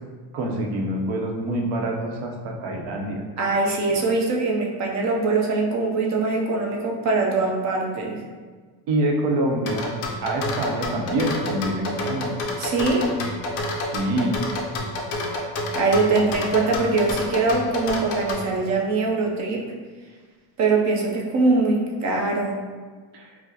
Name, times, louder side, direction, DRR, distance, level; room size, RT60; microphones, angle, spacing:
voice 1, 0.3-3.2 8.9-12.7 13.9-14.4 15.9-16.3 23.1-23.3, right 1 dB, 85° right, 1 dB, 0.8 m, -26 dB
voice 2, 3.4-8.2 12.6-13.1 15.7-19.6 20.6-22.6, right 3 dB, 40° right, -1 dB, 0.5 m, -22 dB
sound 1, 9.7-18.4, left 2 dB, 35° left, 0.4 m, -28 dB
4.6 x 2.1 x 2.7 m, 1.5 s
cardioid pair, 165°, 45 cm